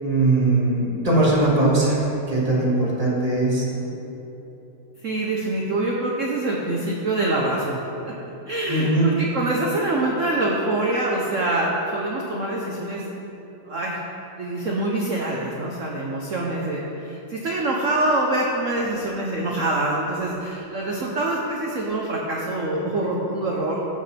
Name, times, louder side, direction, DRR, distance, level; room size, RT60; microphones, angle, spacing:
voice 1, 0.0-2.0 2.3-3.9 8.7-9.1, right 2 dB, 15° right, -6 dB, 2.0 m, -20 dB
voice 2, 5.0-7.8 8.5-13.1 13.6-14.0 14.4-23.8, right 2 dB, 50° right, -2 dB, 0.9 m, -25 dB
16.0 x 6.7 x 3.4 m, 3.0 s
omnidirectional pair, 2.4 m